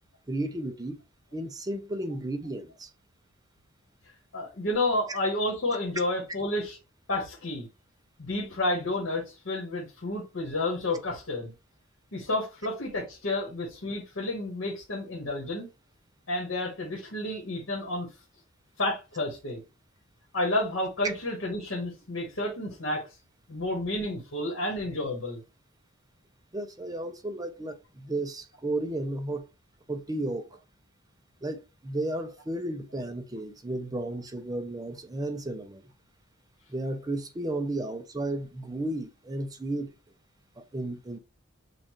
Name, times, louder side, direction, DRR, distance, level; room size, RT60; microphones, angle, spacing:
voice 1, 0.3-1.0 1.3-2.9 5.1-5.2 26.5-29.5 29.9-30.6 31.4-35.9 36.7-39.9 40.6-41.2, right 1 dB, 20° right, 0.6 m, -33 dB
voice 2, 4.3-6.8 7.1-7.7 8.2-11.5 12.1-15.7 16.3-18.1 18.8-19.6 20.3-23.1 23.5-25.4, left 2 dB, 75° left, 1.3 m, -30 dB
6.7 x 2.5 x 3.0 m
head